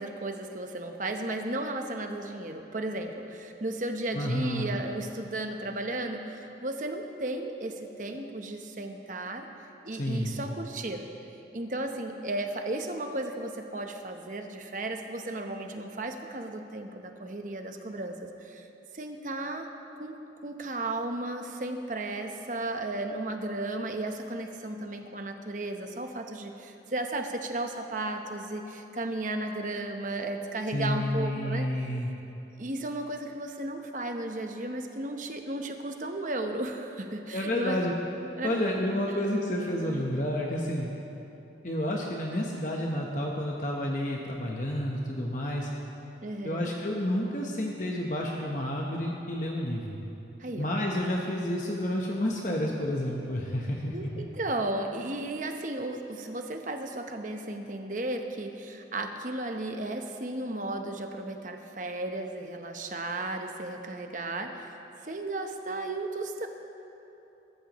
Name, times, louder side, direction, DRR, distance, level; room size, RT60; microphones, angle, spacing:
voice 1, 0.0-9.5 9.8-11.1 11.5-18.7 18.9-19.7 20.0-20.2 20.4-31.7 32.6-37.8 38.2-38.6 39.8-40.1 46.2-46.7 50.4-50.7 53.9-64.7 65.0-66.5, right 2 dB, 45° right, 5 dB, 1.0 m, -34 dB
voice 2, 4.1-4.7 9.9-10.3 30.7-32.1 37.3-37.9 38.4-40.9 41.6-45.7 46.4-50.0 50.6-54.2, left 1 dB, 45° left, -1 dB, 1.1 m, -30 dB
22.0 x 13.5 x 3.1 m, 2.9 s
head